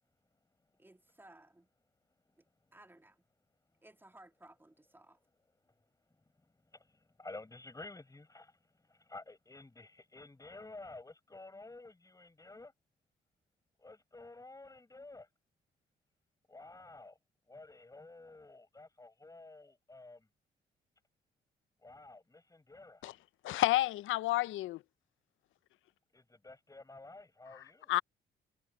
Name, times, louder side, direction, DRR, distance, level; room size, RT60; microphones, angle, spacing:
voice 1, 0.8-1.7 2.4-2.5 2.7-3.3 3.8-5.2, right 1 dB, 10° right, 2.8 m, -59 dB
voice 2, 7.2-8.5 8.9-12.7 13.8-15.3 16.5-17.2 17.5-20.3 21.8-23.0 26.1-27.9, left 2 dB, 15° left, 5.7 m, -51 dB
voice 3, 23.4-24.8 27.9-28.0, left 16 dB, 80° left, 0.5 m, -30 dB
cardioid pair, 90°, 20 cm